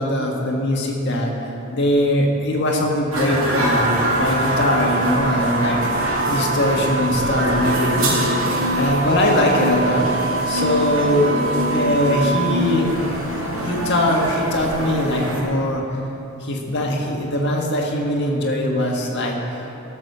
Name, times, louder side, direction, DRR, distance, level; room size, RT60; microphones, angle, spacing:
voice 1, 0.0-8.3 8.7-11.3 11.7-12.9 13.5-15.8 16.4-19.4, left 1 dB, 55° left, -1 dB, 1.8 m, -21 dB
sound 1, 3.1-15.4, equal, 70° right, 2.5 m, -24 dB
sound 2, 3.6-12.2, right 3 dB, 10° right, 2.8 m, -27 dB
15.0 x 6.3 x 6.8 m, 2.9 s
head